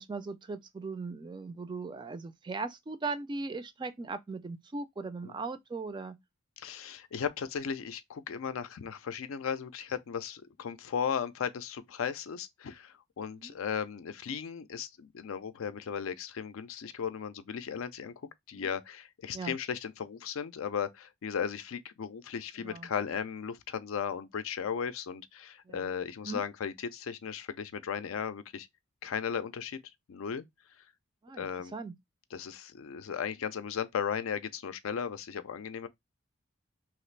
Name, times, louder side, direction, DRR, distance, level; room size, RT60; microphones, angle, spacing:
voice 1, 0.0-6.2 13.3-13.6 18.6-18.7 19.3-19.6 22.6-22.9 25.7-25.9 26.2-26.4 31.2-31.9, right 3 dB, 20° right, 0.3 m, -39 dB
voice 2, 6.6-18.1 18.5-28.7 29.0-29.8 30.1-30.4 31.4-31.7 32.3-35.9, left 7 dB, 80° left, 0.4 m, -36 dB
2.9 x 2.5 x 3.1 m
head